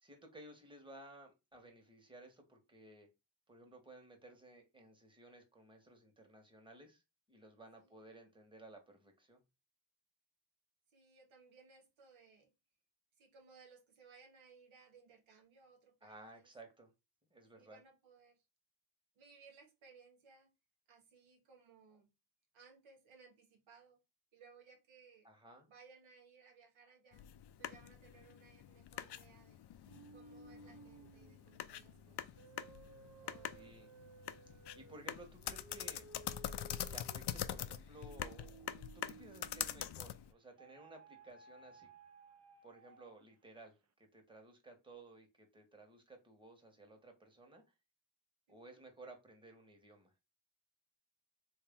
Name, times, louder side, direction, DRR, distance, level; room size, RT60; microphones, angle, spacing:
voice 1, 0.0-3.1 3.5-7.0 7.3-9.4 16.0-16.9 17.3-17.8 25.2-25.7 33.5-34.0 34.7-36.1 36.9-41.9 42.6-47.6 48.5-50.1, right 2 dB, 10° right, 1.3 m, -57 dB
voice 2, 10.9-12.5 13.2-16.5 17.5-18.4 19.1-20.5 20.9-22.1 22.5-24.0 24.3-25.3 25.7-27.3 27.6-29.6 30.1-32.5 33.2-33.5 48.5-48.8, right 5 dB, 85° right, 1.2 m, -63 dB
sound 1, 27.1-40.3, left 11 dB, 60° left, 0.5 m, -45 dB
sound 2, 29.8-40.0 40.6-43.3, right 4 dB, 35° right, 0.6 m, -59 dB
3.2 x 2.8 x 3.6 m
cardioid pair, 55°, 46 cm